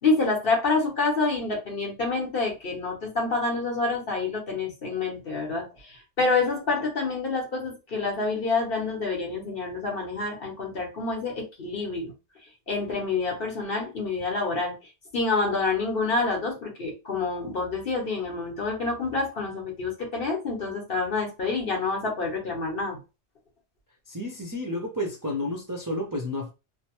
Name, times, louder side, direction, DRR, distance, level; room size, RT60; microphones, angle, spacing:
voice 1, 0.0-5.7 6.2-12.1 12.7-14.7 15.1-23.0, left 3 dB, 55° left, 1.3 m, -27 dB
voice 2, 24.1-26.5, left 1 dB, 30° right, 0.3 m, -31 dB
3.0 x 2.0 x 2.9 m
omnidirectional pair, 1.2 m